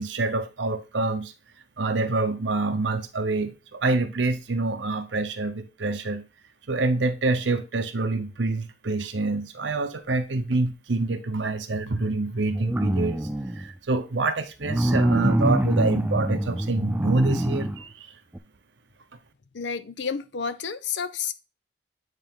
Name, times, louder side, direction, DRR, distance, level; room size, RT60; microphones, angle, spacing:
voice 1, 0.0-1.3 1.8-6.3 6.7-13.3 13.5-18.1, right 3 dB, 90° right, 0.8 m, -26 dB
sound 1, 12.4-13.7 14.6-17.8 18.3-18.4, right 1 dB, 10° right, 0.3 m, -24 dB
voice 2, 19.5-21.3, left 6 dB, 80° left, 0.6 m, -30 dB
8.9 x 3.3 x 3.7 m
head